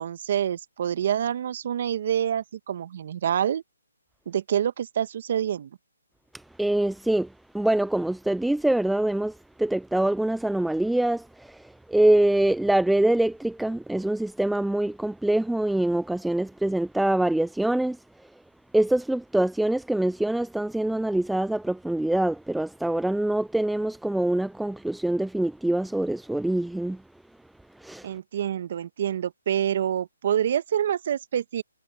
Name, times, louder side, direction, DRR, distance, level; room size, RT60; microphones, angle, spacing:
voice 1, 0.0-3.6 4.3-5.7 28.0-31.6, right 9 dB, 50° right, 1.5 m, -27 dB
voice 2, 6.3-18.3 18.7-27.0 27.8-28.1, right 1 dB, ahead, 0.5 m, -25 dB
hypercardioid pair, 150°, 0 cm